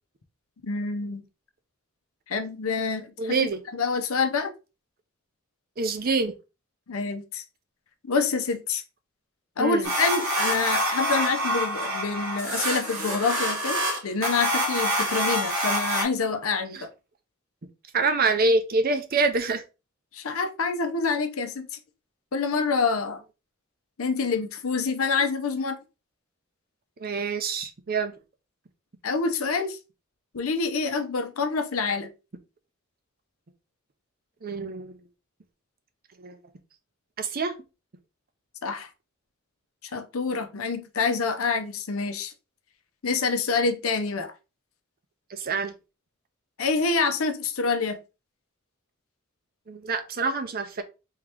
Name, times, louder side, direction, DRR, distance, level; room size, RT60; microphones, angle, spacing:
voice 1, 0.6-1.2 2.3-4.5 6.9-7.4 8.1-8.8 9.6-16.9 20.1-21.7 22.3-23.2 24.0-25.8 29.0-29.8 30.3-32.1 38.6-38.9 39.8-42.3 43.0-44.3 46.6-48.0, left 4 dB, 75° left, 0.7 m, -27 dB
voice 2, 3.2-3.6 5.8-6.3 9.6-9.9 16.7-16.8 17.9-19.6 27.0-28.1 34.4-35.0 36.2-36.4 37.2-37.5 45.3-45.7 49.7-50.8, right 3 dB, 45° right, 0.6 m, -26 dB
sound 1, 9.8-16.0, equal, 85° right, 1.8 m, -26 dB
3.6 x 2.9 x 3.4 m
head